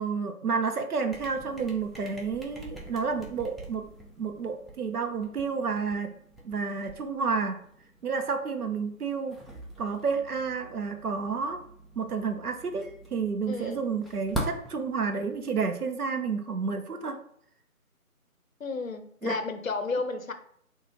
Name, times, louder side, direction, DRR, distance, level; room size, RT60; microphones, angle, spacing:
voice 1, 0.0-3.9 4.2-6.1 6.4-7.6 8.0-9.4 9.8-11.6 12.0-12.8 13.1-17.2 19.2-19.4, right 5 dB, 85° right, 6 dB, 0.7 m, -30 dB
sound 1, 1.1-15.9, equal, ahead, 0.4 m, -43 dB
voice 2, 13.5-13.8 18.6-20.3, left 3 dB, 65° left, 7 dB, 0.6 m, -32 dB
3.6 x 2.4 x 3.1 m, 0.63 s
figure-of-eight pair, 180°, 43 cm